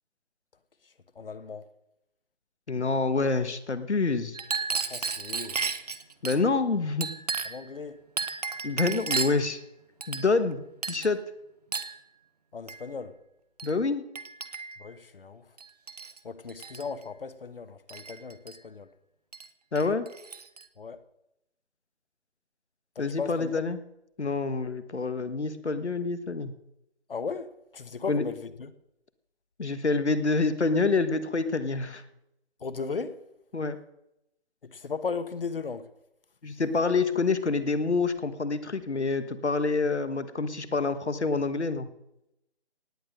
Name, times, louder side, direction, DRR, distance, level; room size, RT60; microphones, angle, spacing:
voice 1, 1.1-1.7 4.9-5.6 7.4-8.0 12.5-13.2 14.8-15.4 16.2-18.9 20.8-21.0 22.9-23.6 27.1-28.7 32.6-33.2 34.6-35.9, left 5 dB, 55° left, 13 dB, 1.3 m, -36 dB
voice 2, 2.7-4.4 6.2-7.1 8.6-9.6 10.1-11.2 13.6-14.0 19.7-20.0 23.0-23.8 24.2-26.5 28.1-28.2 29.6-32.0 33.5-33.8 36.4-41.9, left 3 dB, 85° left, 12 dB, 1.5 m, -27 dB
Chink clink, 4.3-6.4 7.0-7.7 8.2-9.5 10.0-10.5 10.8-11.1 11.7-12.0 12.7-12.8 13.6-13.7 14.1-14.9 15.6-16.2 16.5-16.9 17.9-18.6 19.3-19.5 19.8-20.6, right 5 dB, 35° right, 0.9 m, -33 dB
18.0 x 9.1 x 6.5 m, 0.85 s
figure-of-eight pair, 160°, 33 cm